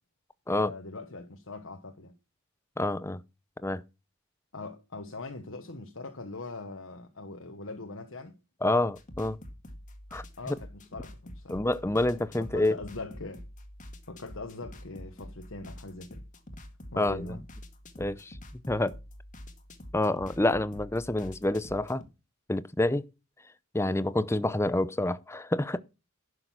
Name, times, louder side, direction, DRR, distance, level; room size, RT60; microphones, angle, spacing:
voice 1, 0.5-2.1 4.5-8.4 10.4-11.6 12.4-13.5 14.1-16.2 16.9-17.4, left 3 dB, 65° left, 1.2 m, -41 dB
voice 2, 2.8-3.2 3.6-3.8 8.6-9.4 10.1-10.6 11.5-12.7 17.0-17.2 18.0-18.4 18.7-19.0 19.9-22.0 22.5-23.1 23.7-25.8, left 1 dB, 10° left, 0.6 m, -28 dB
sound 1, 9.0-22.1, left 1 dB, 35° left, 1.7 m, -47 dB
11.5 x 6.6 x 5.9 m
head